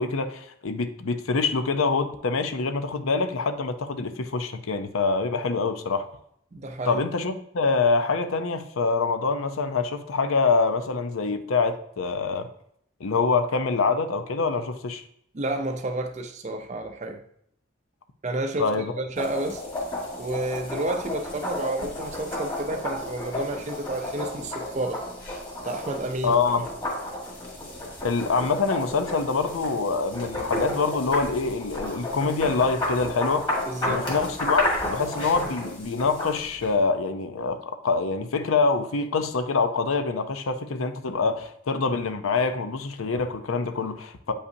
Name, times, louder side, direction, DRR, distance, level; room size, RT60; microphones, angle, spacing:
voice 1, 0.0-6.1 6.8-12.5 13.0-15.0 18.6-18.9 26.2-26.7 28.0-33.5 33.9-44.3, left 4 dB, 85° left, 0.6 m, -25 dB
voice 2, 6.5-7.0 15.3-17.2 18.2-19.6 20.2-25.0 25.6-26.7 33.7-34.1, right 2 dB, 35° right, 0.5 m, -30 dB
sound 1, 19.2-36.7, left 1 dB, 25° left, 1.6 m, -32 dB
8.3 x 5.4 x 2.7 m
head